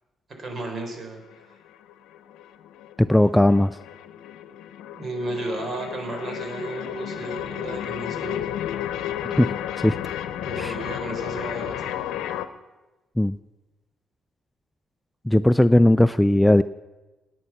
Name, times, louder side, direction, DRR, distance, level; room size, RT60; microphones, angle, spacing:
voice 1, 0.4-1.2 1.5-1.6 4.9-8.4 10.4-11.9, right 2 dB, 45° right, 4 dB, 4.1 m, -33 dB
sound 1, 1.2-12.5, left 11 dB, 90° left, 0.8 m, -33 dB
voice 2, 3.0-3.8 9.4-9.5 9.8-10.0 10.6-10.7 13.2-13.4 15.3-16.6, left 1 dB, 5° left, 13 dB, 0.3 m, -17 dB
18.0 x 9.3 x 5.9 m, 1.1 s
cardioid pair, 90°, 0 cm